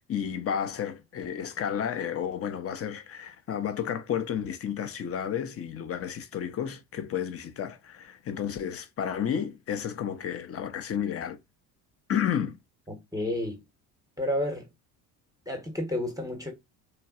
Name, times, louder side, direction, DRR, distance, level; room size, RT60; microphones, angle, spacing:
voice 1, 0.1-11.4 12.1-12.6, left 8 dB, 30° left, 0.6 m, -31 dB
voice 2, 12.9-13.6 14.2-14.7 15.5-16.5, left 1 dB, 10° right, 0.9 m, -31 dB
3.2 x 2.5 x 2.4 m
hypercardioid pair, 60°, 46 cm